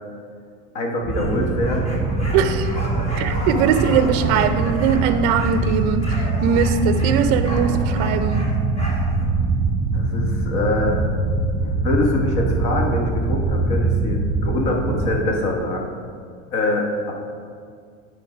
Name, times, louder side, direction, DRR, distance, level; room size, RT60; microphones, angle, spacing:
voice 1, 0.7-1.9 7.6-7.9 9.9-11.0 11.6-15.9 16.5-17.1, left 2 dB, 55° left, 1 dB, 1.4 m, -24 dB
sound 1, 1.0-15.2, right 3 dB, 15° right, 0.8 m, -23 dB
sound 2, 1.1-9.2, equal, 15° left, 1.1 m, -34 dB
voice 2, 2.3-2.7 3.2-8.4, right 7 dB, 40° right, 10 dB, 0.5 m, -20 dB
9.7 x 3.9 x 4.9 m, 2.1 s
supercardioid pair, 150°, 39 cm